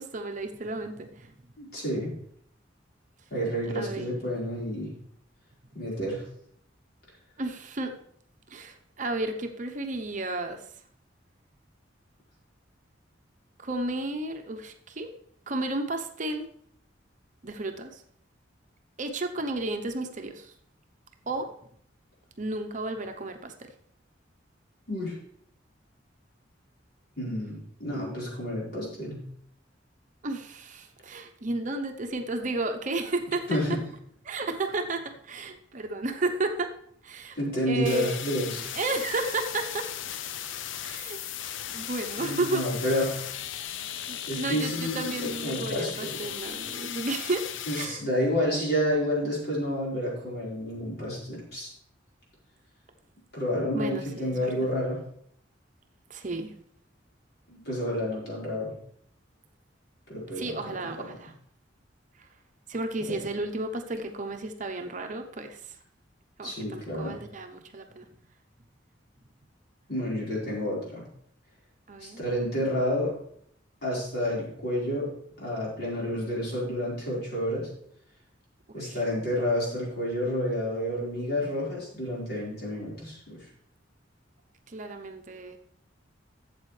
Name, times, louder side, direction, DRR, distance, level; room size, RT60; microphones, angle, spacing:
voice 1, 0.0-1.3 3.7-4.3 7.4-8.0 8.5-10.7 13.6-15.1 15.5-16.5 17.4-18.0 19.0-20.5 21.3-21.5 22.4-23.7 30.2-33.8 34.2-36.7 37.0-37.4 37.7-38.2 38.7-39.9 40.8-41.2 41.7-42.9 44.1-48.0 53.7-54.5 56.1-56.6 60.3-61.3 62.2-62.3 62.7-65.8 66.4-68.1 71.9-72.2 78.7-79.0 84.7-85.6, right 2 dB, 40° right, 5 dB, 0.8 m, -33 dB
voice 2, 1.6-2.1 3.3-4.9 5.7-6.2 24.9-25.2 27.1-29.2 33.5-33.8 37.4-38.7 42.2-43.2 44.3-46.2 47.7-51.7 53.3-55.0 57.5-58.7 60.1-60.6 63.1-63.2 66.4-67.2 69.9-71.0 72.0-73.1 73.8-75.1 75.4-77.7 78.7-83.4, equal, 55° left, -5 dB, 4.6 m, -30 dB
sound 1, 37.9-47.9, left 10 dB, 80° left, 0.5 m, -37 dB
12.5 x 7.8 x 3.3 m, 0.66 s
head